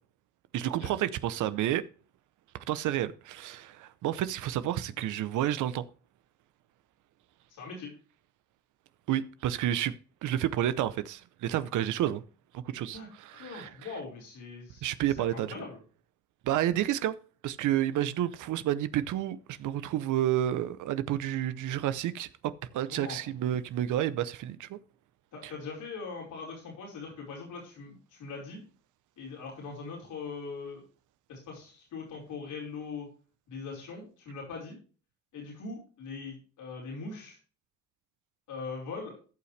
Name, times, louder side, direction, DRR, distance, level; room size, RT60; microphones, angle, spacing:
voice 1, 0.5-1.8 2.7-5.8 9.1-9.9 10.2-12.2 12.5-13.7 14.8-15.5 16.4-17.2 17.4-24.8 25.4-25.5, right 12 dB, 80° right, 0.8 m, -30 dB
voice 2, 7.5-7.9 12.9-13.1 13.3-15.8 22.9-23.2 25.3-28.6 29.2-30.8 31.3-33.1 33.5-34.8 35.3-37.4 38.5-39.2, left 4 dB, 85° left, 5.0 m, -41 dB
15.5 x 5.7 x 3.3 m
cardioid pair, 90°, 30 cm